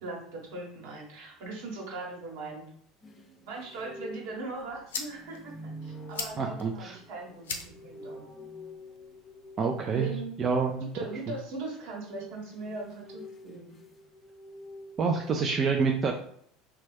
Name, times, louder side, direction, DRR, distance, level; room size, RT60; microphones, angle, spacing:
voice 1, 0.0-2.7 3.5-8.3 9.9-10.3 10.8-13.7, right 3 dB, 70° right, -2 dB, 1.2 m, -40 dB
sound 1, 3.0-10.3 12.2-15.5, equal, 30° left, 0.6 m, -47 dB
sound 2, 4.3-10.3, left 5 dB, 85° left, 0.5 m, -43 dB
voice 2, 6.4-7.0 9.6-10.1 10.4-10.8 15.0-16.1, right 5 dB, 40° right, 2 dB, 0.4 m, -27 dB
3.0 x 2.3 x 3.3 m, 0.64 s
hypercardioid pair, 80°, 0 cm